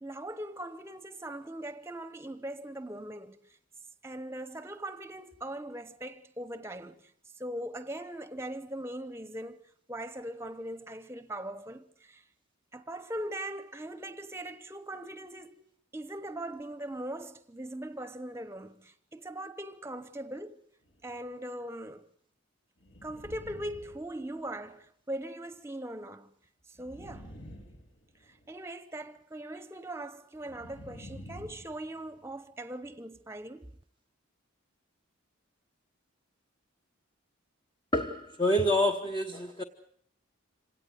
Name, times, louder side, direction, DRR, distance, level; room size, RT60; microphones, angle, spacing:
voice 1, 0.0-3.5 4.0-7.1 7.4-9.6 9.9-12.2 12.7-15.6 15.9-20.6 21.0-22.1 23.0-26.3 26.7-27.4 28.2-33.7, right 1 dB, 10° right, 1.0 m, -40 dB
sound 1, 20.8-21.2 22.8-24.7 26.7-28.5 30.4-32.4, equal, 70° left, 4.1 m, -49 dB
voice 2, 37.9-39.6, left 1 dB, 20° left, 1.0 m, -27 dB
26.5 x 17.5 x 7.9 m
head